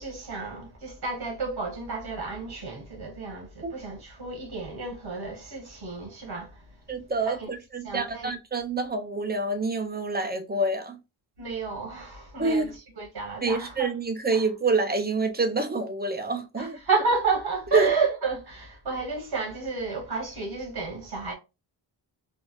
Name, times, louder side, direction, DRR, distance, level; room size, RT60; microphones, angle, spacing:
voice 1, 0.0-6.6 7.3-7.5 7.8-8.3 11.4-13.9 14.3-14.4 16.6-21.3, right 4 dB, 55° right, 1.3 m, -31 dB
voice 2, 6.9-11.0 12.4-12.7 13.4-16.8 17.7-17.9, right 3 dB, 25° right, 0.4 m, -27 dB
3.5 x 2.5 x 2.3 m
wide cardioid pair, 155°, 45 cm